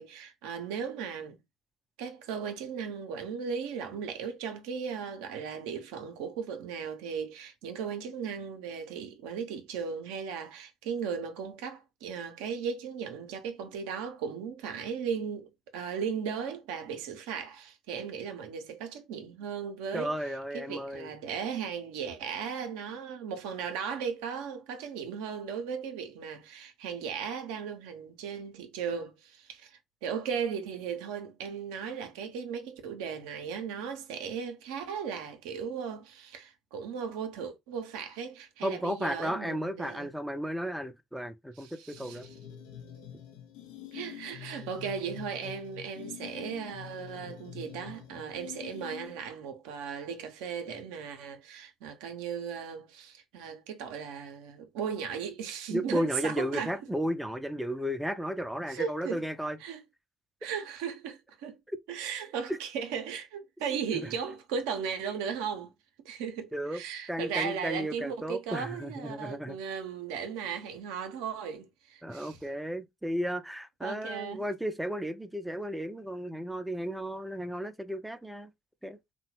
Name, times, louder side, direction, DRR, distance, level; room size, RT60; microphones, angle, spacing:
voice 1, 0.0-1.4 2.0-20.2 20.5-40.1 41.6-42.3 43.9-56.7 58.7-59.2 59.6-59.8 60.4-61.6 61.9-65.7 66.0-72.4 73.8-74.4, right 7 dB, 80° right, 0.5 m, -37 dB
voice 2, 19.9-21.1 38.6-42.3 55.7-59.6 66.5-66.8 67.1-69.6 72.0-78.5 78.8-79.0, equal, 5° right, 0.4 m, -34 dB
sound 1, 41.9-49.4, left 10 dB, 80° left, 0.5 m, -46 dB
2.7 x 2.1 x 2.9 m
hypercardioid pair, 60°, 0 cm